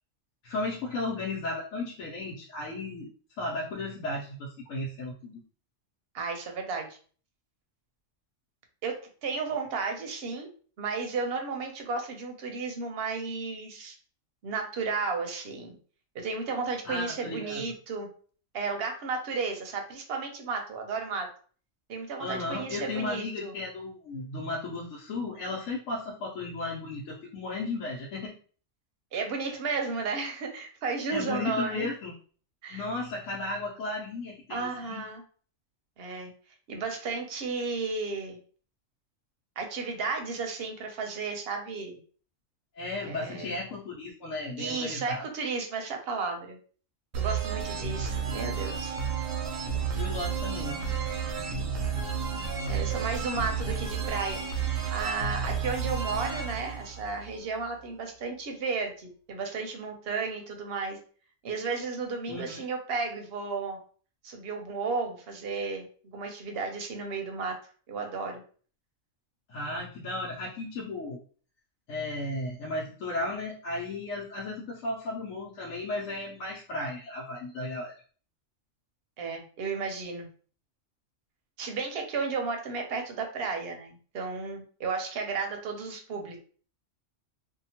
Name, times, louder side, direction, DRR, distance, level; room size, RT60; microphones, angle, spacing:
voice 1, 0.4-3.1 3.4-5.4 16.8-17.6 22.2-28.3 31.1-32.1 32.7-35.1 42.8-45.2 49.9-50.8 62.3-62.6 69.5-71.2 71.9-77.9, left 2 dB, 85° left, -4 dB, 1.1 m, -35 dB
voice 2, 6.1-6.9 8.8-10.5 10.8-13.9 14.4-15.8 16.1-18.1 18.5-21.3 21.9-23.5 29.1-31.9 32.6-32.8 34.5-35.2 36.0-36.3 36.7-38.4 39.6-42.0 43.0-43.5 44.6-46.6 47.1-49.0 52.7-54.4 54.9-61.0 61.4-63.8 64.2-65.9 66.1-67.6 67.9-68.4 79.2-80.3 81.6-86.4, right 4 dB, 60° right, 3 dB, 0.8 m, -33 dB
sound 1, 47.1-57.7, right 6 dB, 80° right, 1.0 m, -31 dB
2.7 x 2.2 x 2.7 m, 0.42 s
omnidirectional pair, 1.3 m